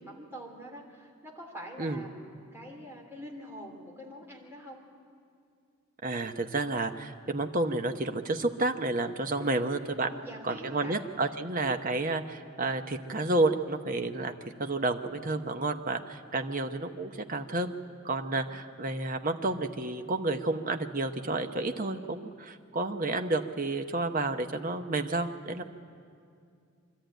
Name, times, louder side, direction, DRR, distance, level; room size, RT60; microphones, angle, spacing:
voice 1, 0.0-4.8 9.4-9.6 10.0-11.0, equal, 10° right, -2 dB, 3.0 m, -45 dB
voice 2, 6.0-10.1 10.5-14.3 14.6-17.7 18.0-25.6, right 2 dB, 35° right, 6 dB, 0.9 m, -30 dB
25.0 x 13.0 x 9.1 m, 2.4 s
head